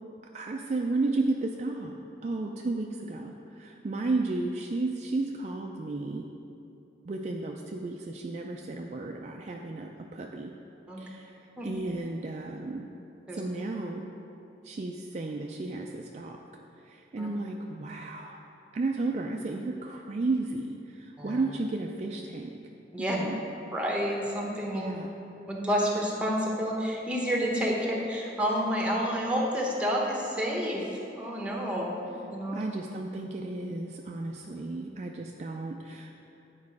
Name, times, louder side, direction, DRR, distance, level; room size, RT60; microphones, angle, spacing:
voice 1, 0.3-2.0 2.2-6.3 7.0-10.5 11.0-12.9 13.3-14.1 14.6-16.4 16.8-18.5 18.7-22.5 23.0-23.4 24.7-25.1 32.5-36.1, right 2 dB, 40° right, 1 dB, 0.3 m, -33 dB
voice 2, 23.7-24.8 25.5-30.8 31.1-31.9 32.3-32.6, equal, 5° right, -2 dB, 0.9 m, -29 dB
9.6 x 4.7 x 4.7 m, 2.9 s
head